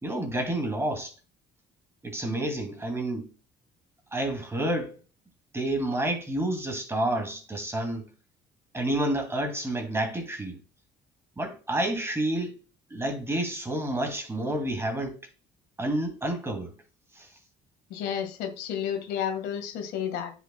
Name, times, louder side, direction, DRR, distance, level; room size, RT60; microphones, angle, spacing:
voice 1, 0.0-1.1 2.0-3.3 4.1-4.9 5.5-8.0 8.7-10.6 11.4-12.6 12.9-15.2 15.8-16.7 17.2-17.3, right 1 dB, 15° right, 2.4 m, -29 dB
voice 2, 17.9-20.3, left 8 dB, 85° left, 1.7 m, -31 dB
9.9 x 5.9 x 2.2 m
cardioid pair, 110°, 17 cm